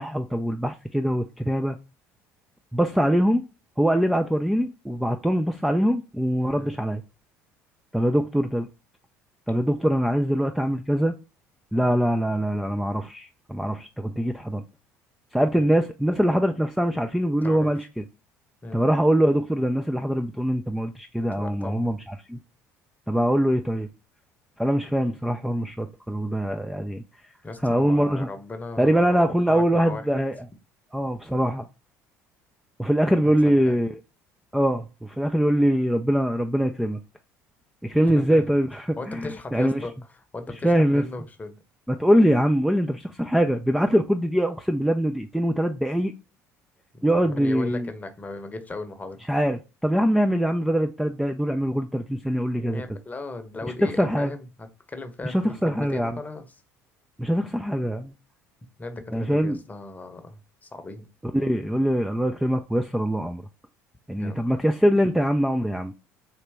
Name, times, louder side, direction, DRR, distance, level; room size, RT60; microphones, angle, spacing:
voice 1, 0.0-1.8 2.7-3.4 3.8-7.0 7.9-8.7 9.5-11.2 11.7-14.6 15.3-18.0 18.7-22.4 23.1-23.9 24.6-27.0 27.6-28.3 28.8-30.4 30.9-31.7 32.8-34.0 34.5-37.0 37.8-39.8 40.6-41.0 41.9-46.1 47.0-47.9 49.3-52.8 53.8-54.3 55.2-56.1 57.2-58.1 59.1-59.6 61.3-63.5 64.1-65.9, equal, ahead, 0.4 m, -23 dB
voice 2, 21.3-21.8 27.4-30.3 33.2-33.8 38.1-38.4 39.0-39.9 40.3-41.6 46.9-49.2 52.6-56.4 58.8-61.1 64.2-64.6, left 2 dB, 20° left, 0.9 m, -37 dB
4.2 x 2.8 x 3.5 m
hypercardioid pair, 65°, 8 cm